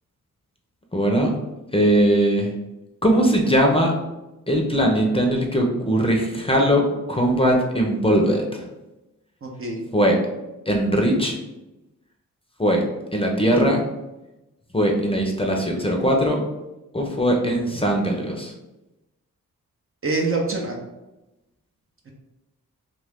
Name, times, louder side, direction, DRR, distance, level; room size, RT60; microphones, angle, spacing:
voice 1, 0.9-1.3 1.7-2.5 3.0-3.9 4.5-6.8 7.1-8.6 9.9-10.2 10.7-11.3 12.6-12.8 13.1-13.8 14.7-16.4 16.9-18.5, equal, 15° left, 0 dB, 0.7 m, -20 dB
voice 2, 9.4-9.8 20.0-20.8, right 3 dB, 35° right, 0 dB, 0.6 m, -25 dB
2.5 x 2.4 x 3.5 m, 0.99 s
supercardioid pair, 45°, 36 cm